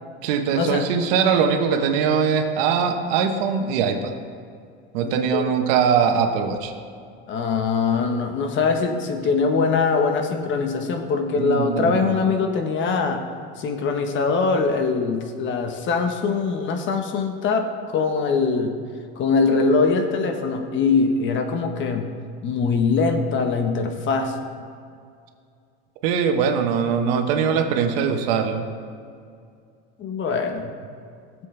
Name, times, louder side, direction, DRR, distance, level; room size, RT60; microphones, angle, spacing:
voice 1, 0.2-4.1 4.9-6.7 11.4-12.3 26.0-28.7, right 6 dB, 80° right, 5 dB, 1.1 m, -21 dB
voice 2, 5.0-5.5 7.3-13.2 13.6-18.7 19.2-22.1 22.4-24.3 30.0-30.7, left 4 dB, 40° left, 5 dB, 1.1 m, -22 dB
15.5 x 7.6 x 3.3 m, 2.3 s
supercardioid pair, 130°, 29 cm